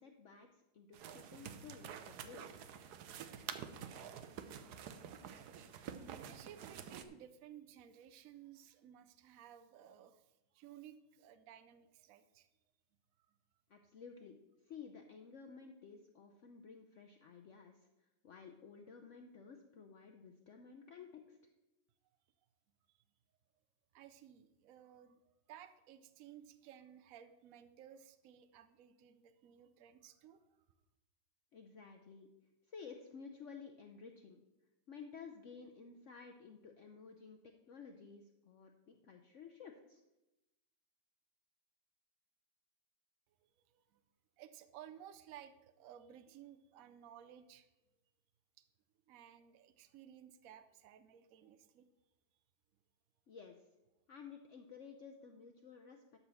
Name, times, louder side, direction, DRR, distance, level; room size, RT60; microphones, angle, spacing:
voice 1, 0.0-2.6 13.7-14.4 14.7-21.4 31.5-32.3 32.7-34.4 34.9-40.0 53.3-53.6 54.1-56.2, left 5 dB, 75° left, 3 dB, 0.7 m, -54 dB
sound 1, 0.9-7.0, right 8 dB, 65° right, 1.1 m, -49 dB
voice 2, 6.0-12.5 13.3-13.4 22.9-23.0 23.9-30.6 43.4-44.0 44.4-47.7 48.6-48.7 49.1-51.8, right 10 dB, 85° right, 10 dB, 0.7 m, -57 dB
12.0 x 4.4 x 6.9 m, 0.96 s
omnidirectional pair, 2.2 m